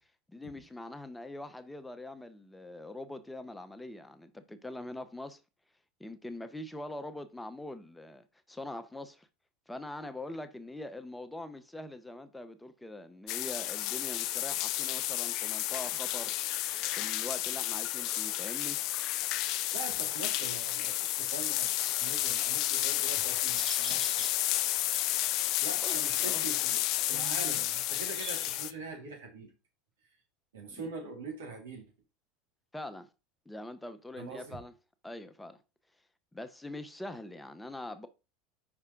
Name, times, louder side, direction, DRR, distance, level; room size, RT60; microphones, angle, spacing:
voice 1, 0.3-5.4 6.0-9.3 9.7-16.3 17.0-18.8 25.8-26.4 30.7-30.8 32.7-33.1 33.5-34.7 35.0-35.6 36.3-38.1, left 1 dB, 10° left, 0.7 m, -43 dB
sound 1, 13.3-28.7, left 14 dB, 55° left, 0.5 m, -31 dB
voice 2, 19.7-24.3 24.9-25.1 25.6-29.5 30.5-31.9 34.2-34.6, right 4 dB, 85° right, 2.3 m, -43 dB
sound 2, 23.5-28.6, right 3 dB, 30° right, 1.3 m, -48 dB
5.5 x 4.8 x 3.6 m
hypercardioid pair, 90°, 0 cm